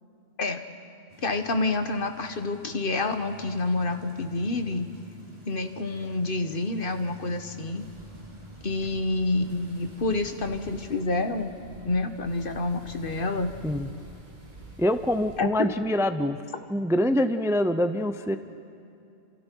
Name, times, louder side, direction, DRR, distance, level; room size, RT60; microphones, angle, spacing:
sound 1, 1.1-11.0, right 1 dB, 45° right, 3.6 m, -49 dB
voice 1, 1.2-4.9 5.4-7.8 8.6-11.5 11.8-13.5 15.4-15.5, left 2 dB, 55° left, 7 dB, 1.4 m, -28 dB
sound 2, 7.8-15.4, right 1 dB, 80° right, 3.1 m, -47 dB
voice 2, 14.8-16.4 16.7-18.4, left 1 dB, 5° right, 9 dB, 0.6 m, -25 dB
29.5 x 27.5 x 4.6 m, 2.6 s
omnidirectional pair, 1.1 m